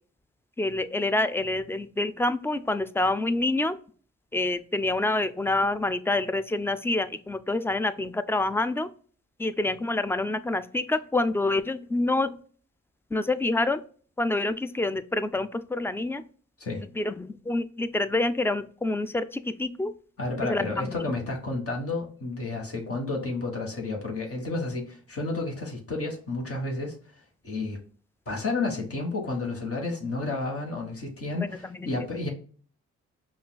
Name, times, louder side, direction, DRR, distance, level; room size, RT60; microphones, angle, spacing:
voice 1, 0.6-3.7 4.3-8.9 9.4-12.4 13.1-13.8 14.2-16.2 17.0-19.9 20.5-20.7, left 2 dB, 10° left, 0.4 m, -27 dB
voice 2, 20.2-27.0 27.4-27.8 28.3-32.3, left 3 dB, 45° left, 1.3 m, -31 dB
5.3 x 2.4 x 2.2 m
supercardioid pair, 45°, 32 cm